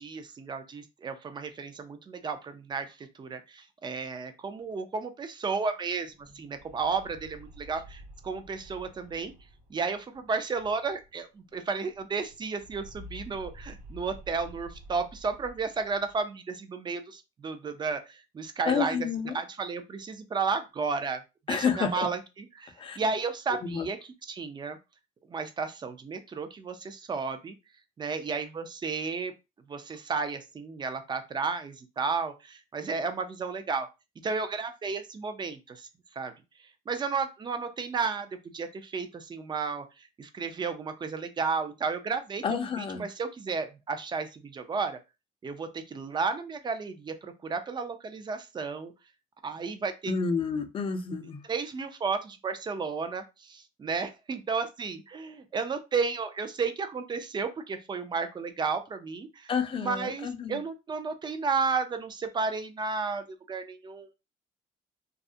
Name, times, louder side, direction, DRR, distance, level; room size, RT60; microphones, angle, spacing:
voice 1, 0.0-9.3 9.7-19.0 19.3-21.2 21.5-24.0 24.3-24.8 25.2-27.5 28.0-29.3 29.7-33.9 34.2-45.0 45.4-48.9 49.4-50.1 51.5-59.5 59.8-64.1, right 4 dB, 25° right, 8 dB, 0.4 m, -33 dB
sound 1, 6.1-11.2 11.5-11.6 11.9-16.2, equal, 85° right, 1.0 m, -50 dB
voice 2, 18.7-19.4 21.5-22.1 22.8-23.0 23.6-23.9 42.4-43.1 50.1-51.4 59.5-60.6, left 6 dB, 30° left, 6 dB, 0.5 m, -30 dB
2.3 x 2.0 x 2.6 m, 0.26 s
cardioid pair, 110°, 17 cm